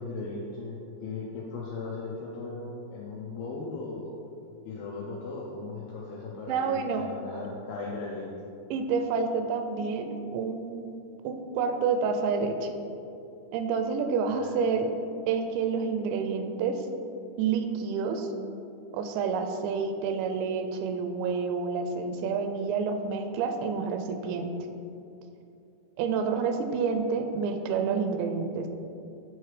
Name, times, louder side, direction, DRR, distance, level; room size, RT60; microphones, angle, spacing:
voice 1, 0.0-4.1 4.6-8.3 14.3-14.7, left 3 dB, 85° left, -4 dB, 2.1 m, -37 dB
voice 2, 6.5-7.0 8.7-10.9 11.2-12.7 13.5-14.9 15.3-16.8 17.4-18.3 18.9-24.5 26.0-28.7, right 5 dB, 85° right, 6 dB, 2.8 m, -29 dB
9.0 x 3.1 x 4.8 m, 2.6 s
omnidirectional pair, 5.0 m